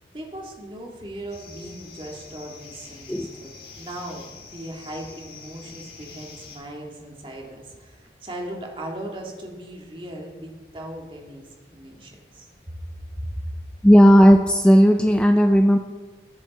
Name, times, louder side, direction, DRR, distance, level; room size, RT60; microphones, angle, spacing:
voice 1, 0.1-12.5 13.2-13.4, right 1 dB, 30° right, -1 dB, 2.2 m, -38 dB
sound 1, 1.3-6.6, left 4 dB, 70° left, 4.6 m, -45 dB
voice 2, 13.8-15.8, equal, 5° left, 6 dB, 0.4 m, -14 dB
21.5 x 7.2 x 4.2 m, 1.4 s
head